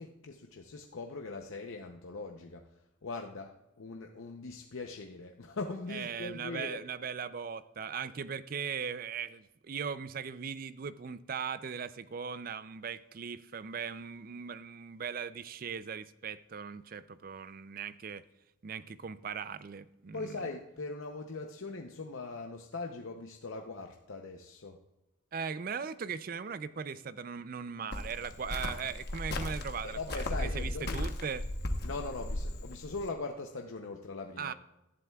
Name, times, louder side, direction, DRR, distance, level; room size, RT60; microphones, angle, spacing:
voice 1, 0.0-6.8 20.1-24.8 29.8-31.0 31.8-34.5, left 3 dB, 75° left, 3 dB, 0.7 m, -41 dB
voice 2, 5.9-18.2 18.6-20.4 25.3-31.5 34.4-34.5, right 6 dB, 45° right, 15 dB, 0.4 m, -39 dB
Cricket, 27.9-33.1, left 1 dB, 50° left, 1.0 m, -36 dB
17.5 x 11.5 x 2.3 m, 0.95 s
head